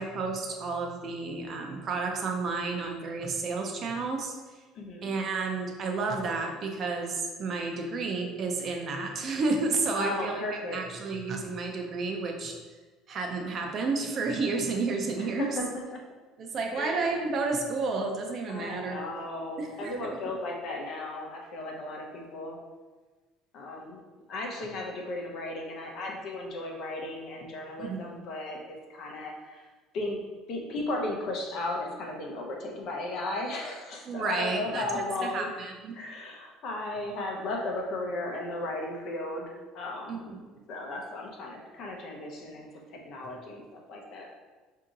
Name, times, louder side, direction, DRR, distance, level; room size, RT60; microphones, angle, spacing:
voice 1, 0.0-4.3 5.0-12.5 13.1-15.4 16.4-19.0 19.6-19.9 27.8-28.2 34.1-36.0 40.1-40.6, right 3 dB, 35° right, 2 dB, 0.6 m, -31 dB
voice 2, 4.7-5.1 10.0-10.8 15.2-16.0 16.7-17.0 18.5-22.6 23.5-24.0 24.3-29.6 29.9-30.2 30.5-35.5 35.9-40.4 40.7-44.4, left 2 dB, 50° left, 1 dB, 0.8 m, -35 dB
4.9 x 2.7 x 3.8 m, 1.3 s
cardioid pair, 155°, 0 cm